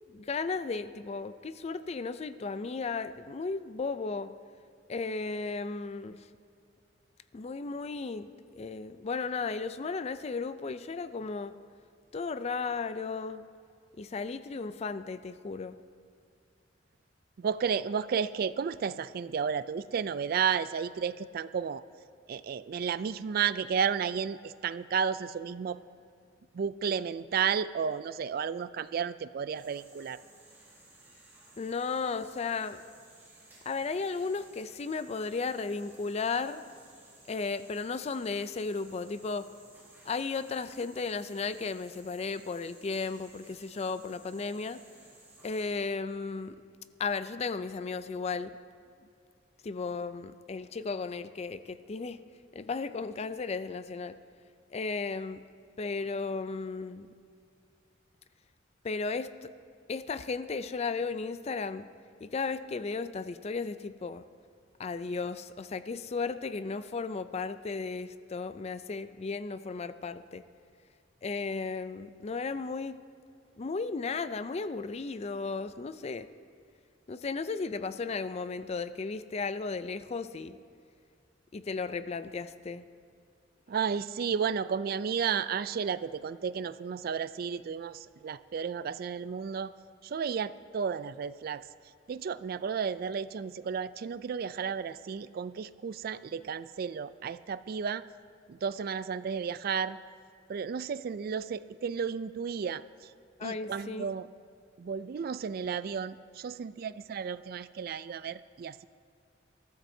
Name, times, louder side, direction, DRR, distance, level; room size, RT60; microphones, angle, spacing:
voice 1, 0.1-4.3 4.9-6.3 7.3-11.6 12.1-13.5 14.0-15.8 31.6-32.8 33.7-36.6 37.3-39.5 40.0-44.8 45.4-46.6 47.0-48.5 49.6-52.2 52.5-54.2 54.7-55.4 55.8-57.1 58.8-59.5 59.9-61.9 62.2-64.2 64.8-70.4 71.2-73.0 73.6-76.3 77.1-80.6 81.5-82.9 103.4-104.1, left 4 dB, 35° left, 13 dB, 0.4 m, -35 dB
voice 2, 17.4-21.8 22.3-25.8 26.5-30.2 83.7-89.7 90.0-91.6 92.1-98.0 98.5-100.0 100.5-103.1 103.4-104.3 104.8-108.9, right 6 dB, 50° right, 15 dB, 0.3 m, -32 dB
sound 1, 29.6-45.6, right 2 dB, 10° right, 3.7 m, -57 dB
22.0 x 13.5 x 2.7 m, 2.3 s
head